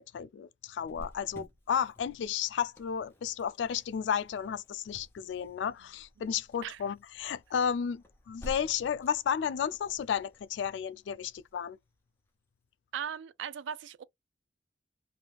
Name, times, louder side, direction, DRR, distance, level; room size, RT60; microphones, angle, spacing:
voice 1, 0.0-11.8, left 8 dB, 70° left, 0.3 m, -33 dB
Cricket, 0.8-12.3, equal, 15° left, 0.6 m, -52 dB
voice 2, 12.9-14.0, right 8 dB, 80° right, 0.3 m, -38 dB
2.7 x 2.3 x 3.2 m
head